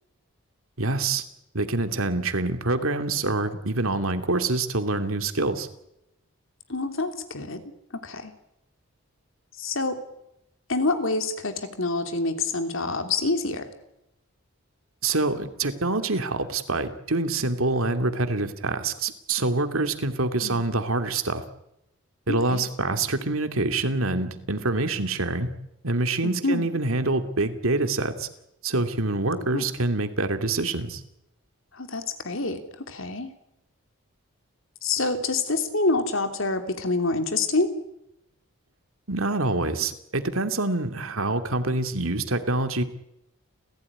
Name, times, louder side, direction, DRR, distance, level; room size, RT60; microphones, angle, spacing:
voice 1, 0.8-1.2 1.5-5.7 15.0-21.4 22.3-25.5 25.8-28.3 28.6-31.0 39.1-42.8, right 2 dB, 70° right, 8 dB, 2.5 m, -26 dB
voice 2, 6.7-7.6 7.9-8.3 9.6-10.0 10.7-13.7 20.4-20.6 22.3-22.6 26.2-26.7 29.3-29.7 31.7-33.3 34.8-37.7, left 3 dB, 65° left, 7 dB, 3.1 m, -27 dB
30.0 x 16.0 x 9.9 m, 0.84 s
head